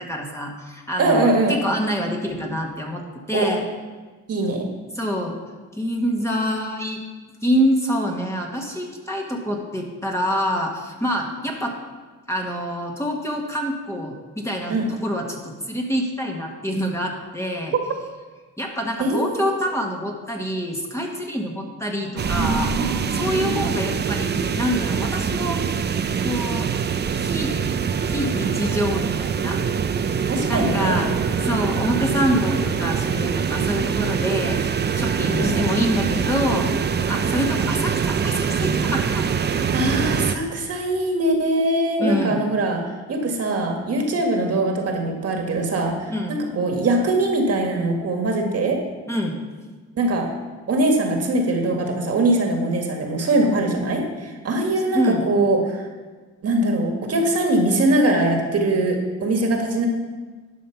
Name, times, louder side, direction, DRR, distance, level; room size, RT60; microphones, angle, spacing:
voice 1, 0.0-3.6 4.9-5.4 5.7-7.0 7.4-11.7 12.3-17.7 18.6-22.7 23.1-25.6 26.2-26.7 27.2-27.6 28.1-29.6 30.5-31.1 31.4-36.7 37.1-39.2 42.0-42.4 46.1-46.4 49.1-49.4 54.9-55.2, equal, 10° left, 0 dB, 1.5 m, -26 dB
voice 2, 1.0-1.6 3.3-3.5 4.3-4.7 14.7-14.9 19.0-19.6 22.2-23.5 30.3-31.0 35.3-35.7 39.5-42.8 43.1-48.8 49.9-50.3 50.7-55.8 56.4-59.9, right 2 dB, 55° right, 2 dB, 1.8 m, -22 dB
sound 1, 22.2-40.3, right 6 dB, 35° right, 0.6 m, -24 dB
11.0 x 5.3 x 5.9 m, 1.3 s
cardioid pair, 90°, 30 cm